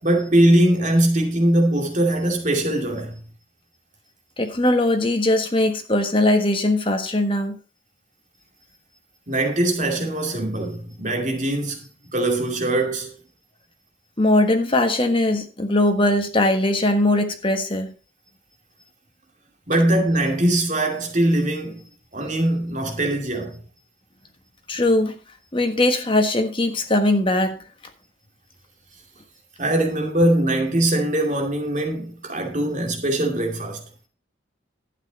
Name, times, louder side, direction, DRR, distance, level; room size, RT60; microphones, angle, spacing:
voice 1, 0.0-3.2 9.3-13.1 19.7-23.6 29.6-33.8, right 1 dB, 40° right, 2.5 m, -21 dB
voice 2, 4.4-7.6 14.2-17.9 24.7-25.2 25.5-27.6, left 1 dB, 25° left, 1.4 m, -20 dB
12.0 x 8.4 x 4.1 m
head